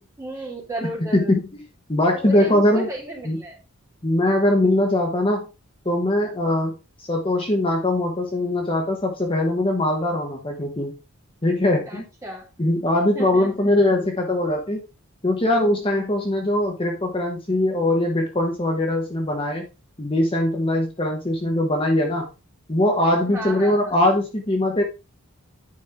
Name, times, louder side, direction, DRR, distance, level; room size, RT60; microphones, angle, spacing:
voice 1, 0.2-1.3 2.1-3.6 11.9-12.5 13.1-13.7 23.3-24.0, right 1 dB, 15° right, -2 dB, 2.5 m, -34 dB
voice 2, 1.1-1.6 1.9-2.9 3.2-3.4 4.0-5.4 5.8-6.7 7.0-10.9 11.4-12.0 12.6-14.8 15.2-19.7 20.0-22.3 22.7-24.8, left 1 dB, 25° left, 2 dB, 1.2 m, -21 dB
9.7 x 5.2 x 3.5 m, 0.28 s
head